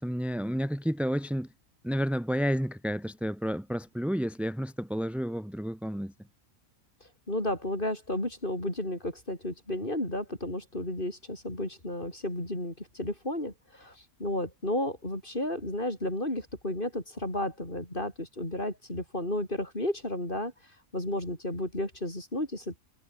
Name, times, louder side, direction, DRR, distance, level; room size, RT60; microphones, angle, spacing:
voice 1, 0.0-1.5 1.8-6.1, equal, ahead, 2.0 m, -30 dB
voice 2, 7.3-20.5 20.9-22.8, left 1 dB, 35° left, 7.3 m, -33 dB
omnidirectional pair, 1.5 m